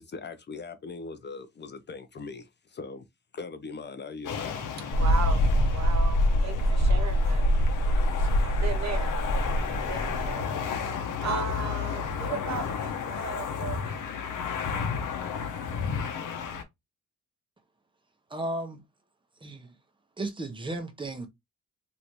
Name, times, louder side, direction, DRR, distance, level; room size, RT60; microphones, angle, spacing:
voice 1, 0.0-3.0 3.3-4.6, left 4 dB, 35° left, 0.4 m, -40 dB
sound 1, 4.2-16.6, left 6 dB, 80° left, 0.7 m, -33 dB
Mechanical fan, 4.9-10.3, equal, 55° left, 0.9 m, -24 dB
voice 2, 5.0-7.5 8.1-9.3 9.6-10.5 11.1-14.0, right 5 dB, 60° right, 0.8 m, -36 dB
voice 3, 18.3-18.8 19.4-19.8 20.2-21.3, right 2 dB, 15° right, 0.7 m, -34 dB
3.2 x 2.6 x 2.9 m
cardioid pair, 110°, 31 cm